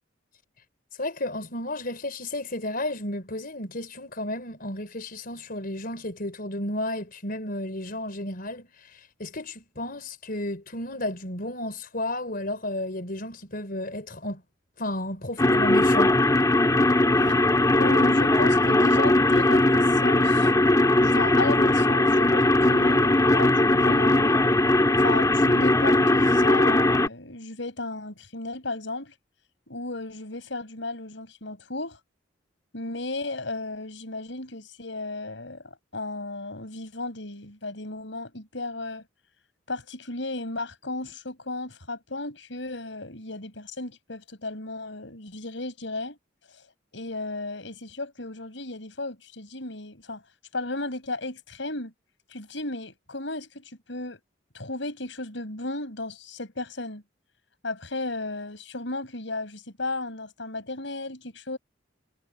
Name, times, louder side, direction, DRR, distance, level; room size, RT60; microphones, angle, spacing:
voice 1, 1.0-14.4 14.8-16.1, left 1 dB, 50° left, 4.7 m, -32 dB
sound 1, 15.4-27.1, left 2 dB, 20° left, 2.0 m, -20 dB
voice 2, 17.1-20.5 21.0-24.4 25.0-29.1 29.7-32.0 32.7-39.1 39.7-46.2 46.5-46.6 46.9-50.2 50.5-51.9 52.3-54.2 54.5-57.0 57.6-61.6, left 2 dB, 75° left, 5.5 m, -34 dB
head